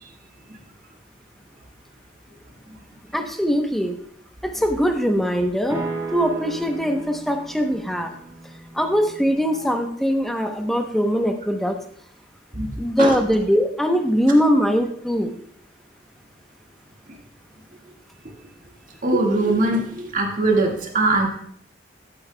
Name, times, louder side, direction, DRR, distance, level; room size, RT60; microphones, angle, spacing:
voice 1, 3.1-3.9 4.4-5.8 6.1-8.1 8.7-11.8 12.8-15.4, equal, ahead, 4 dB, 0.8 m, -21 dB
sound 1, 5.7-9.8, right 2 dB, 15° right, 2.1 m, -35 dB
voice 2, 12.5-13.2 19.0-21.3, right 2 dB, 50° right, 0 dB, 1.8 m, -21 dB
12.5 x 8.7 x 2.2 m, 0.64 s
head